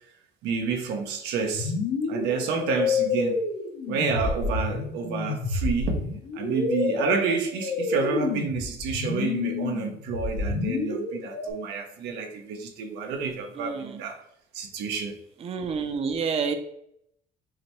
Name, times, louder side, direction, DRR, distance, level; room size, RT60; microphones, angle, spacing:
voice 1, 0.4-1.7 2.1-3.4 3.9-6.0 6.3-14.2 14.5-15.2, right 5 dB, 90° right, 5 dB, 0.7 m, -29 dB
sound 1, 1.5-11.5, left 4 dB, 80° left, 1.1 m, -29 dB
voice 2, 13.6-13.9 15.4-16.5, right 5 dB, 35° right, 7 dB, 0.5 m, -28 dB
5.7 x 2.2 x 3.0 m, 0.75 s
cardioid pair, 110°, 17 cm